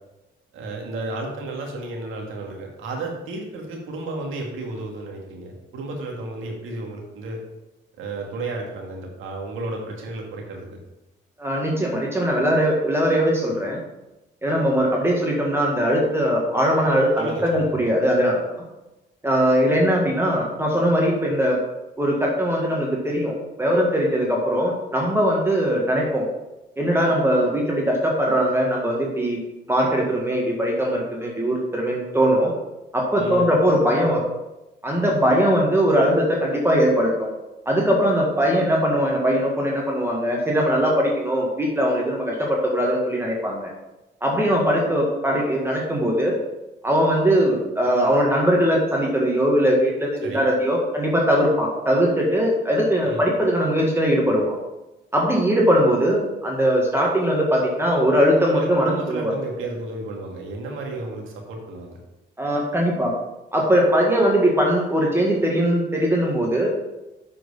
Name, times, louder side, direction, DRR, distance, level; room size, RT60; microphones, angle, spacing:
voice 1, 0.5-7.4 8.0-10.8 17.2-17.7 33.2-33.5 50.2-50.4 53.0-53.2 58.5-62.0, right 2 dB, 90° right, 1 dB, 2.0 m, -32 dB
voice 2, 11.4-13.8 14.4-18.4 19.2-21.6 22.0-26.3 26.8-29.4 29.7-32.5 32.9-34.3 34.8-37.3 37.7-43.7 44.2-46.4 46.8-54.6 55.1-59.3 62.4-63.1 63.5-66.7, equal, 10° right, -2 dB, 1.8 m, -20 dB
7.9 x 4.7 x 5.5 m, 1.0 s
cardioid pair, 90°, 20 cm